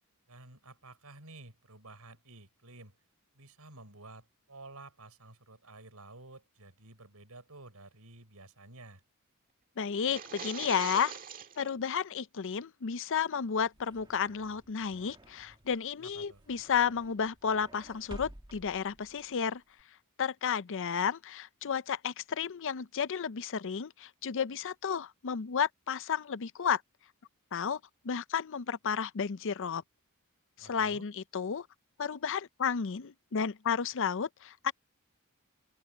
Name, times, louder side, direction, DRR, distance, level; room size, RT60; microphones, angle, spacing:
voice 1, 0.3-3.0 3.3-9.0 16.0-16.4 30.6-31.1, right 2 dB, 80° right, 5.9 m, -52 dB
voice 2, 9.8-11.1 11.6-19.6 20.2-26.8 27.5-27.8 28.0-29.8 30.6-31.7 32.0-34.7, left 7 dB, 60° left, 0.6 m, -32 dB
sound 1, 9.9-11.7, right 6 dB, 40° right, 1.7 m, -42 dB
sound 2, 13.4-19.8, right 1 dB, 20° right, 1.5 m, -53 dB
open air
head